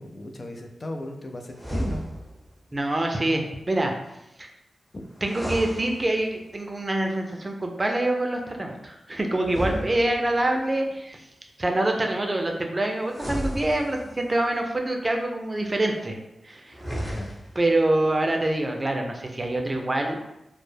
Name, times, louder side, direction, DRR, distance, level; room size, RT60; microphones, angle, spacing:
voice 1, 0.0-2.0 4.9-5.1 17.0-17.3, left 1 dB, 45° left, 4 dB, 0.4 m, -36 dB
sound 1, 1.5-2.5 5.2-6.5 9.4-10.6 13.1-14.3 16.7-17.7, equal, 15° left, 0.9 m, -33 dB
voice 2, 2.7-3.9 4.4-4.5 5.2-11.2 11.6-16.2 16.4-16.8 17.6-20.2, right 1 dB, 35° right, 3 dB, 0.5 m, -25 dB
2.1 x 2.0 x 3.2 m, 0.87 s
cardioid pair, 45°, 0 cm